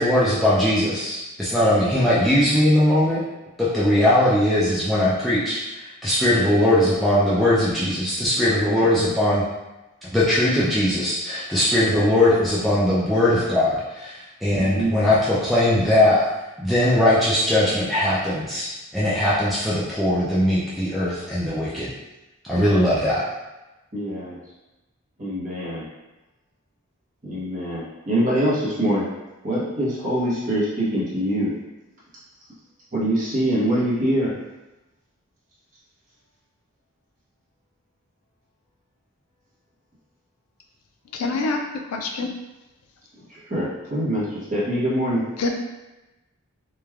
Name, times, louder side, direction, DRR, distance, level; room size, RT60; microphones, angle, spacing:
voice 1, 0.0-3.2 3.6-9.4 10.1-16.3 16.6-21.9 22.4-23.3, left 1 dB, ahead, -10 dB, 0.3 m, -20 dB
voice 2, 14.6-14.9 23.9-24.4 25.2-25.8 27.2-29.1 29.4-31.5 32.9-34.3 43.3-45.2, right 1 dB, 35° right, -8 dB, 0.8 m, -24 dB
voice 3, 41.1-41.6 41.9-42.3 45.4-45.5, left 3 dB, 80° left, 3 dB, 0.4 m, -25 dB
3.1 x 2.2 x 2.3 m, 1.0 s
head